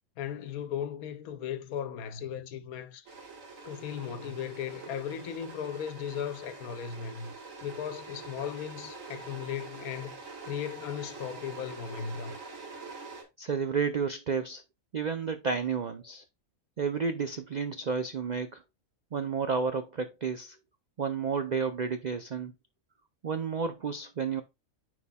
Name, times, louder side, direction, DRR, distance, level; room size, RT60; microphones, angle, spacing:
voice 1, 0.2-3.1 3.6-7.3 7.6-10.1 10.4-12.4, left 8 dB, 85° left, 1.2 m, -37 dB
sound 1, 3.1-13.2, right 4 dB, 65° right, 1.8 m, -45 dB
voice 2, 13.4-14.6 14.9-16.2 16.8-18.6 19.1-20.6 21.0-22.5 23.2-24.4, right 5 dB, 85° right, 0.4 m, -31 dB
9.5 x 4.8 x 2.2 m
omnidirectional pair, 1.5 m